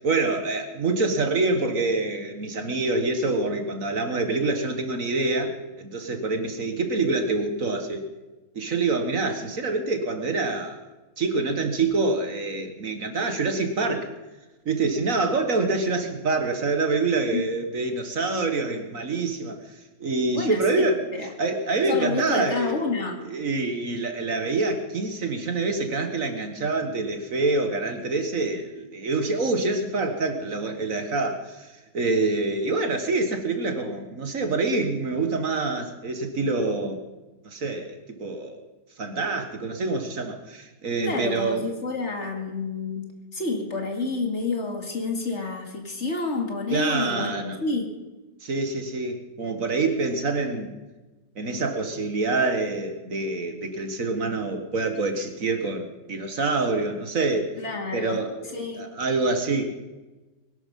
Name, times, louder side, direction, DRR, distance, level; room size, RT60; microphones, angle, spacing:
voice 1, 0.0-8.0 8.6-10.8 11.2-14.1 14.7-19.6 20.0-21.0 21.4-22.9 23.2-37.0 37.4-38.6 39.0-41.7 46.7-47.6 48.4-50.8 51.4-57.6 57.9-59.9, right 3 dB, 60° right, 6 dB, 2.0 m, -26 dB
voice 2, 20.3-21.3 21.9-23.2 41.0-47.9 57.6-58.2 58.5-58.9, left 3 dB, 45° left, 3 dB, 2.5 m, -29 dB
22.0 x 12.0 x 5.5 m, 1.1 s
omnidirectional pair, 1.6 m